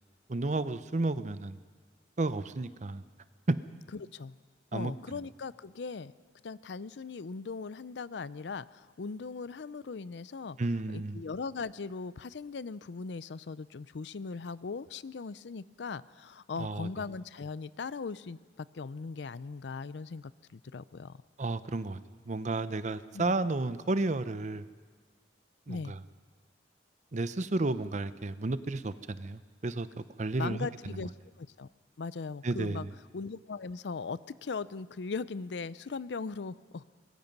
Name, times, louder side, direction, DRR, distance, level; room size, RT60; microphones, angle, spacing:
voice 1, 0.3-1.6 2.2-3.0 3.5-3.6 4.7-4.9 10.6-11.2 16.6-16.9 21.4-22.0 22.3-24.6 25.7-26.0 27.1-29.9 30.2-30.7 32.4-32.9, right 2 dB, 40° right, 13 dB, 0.7 m, -32 dB
voice 2, 3.9-4.4 4.7-6.1 6.4-10.6 10.9-21.2 23.1-23.4 25.7-26.0 30.4-31.1 31.4-31.7 32.0-32.9 33.1-36.8, left 4 dB, 75° left, 17 dB, 0.5 m, -39 dB
24.5 x 21.0 x 5.4 m, 1.5 s
head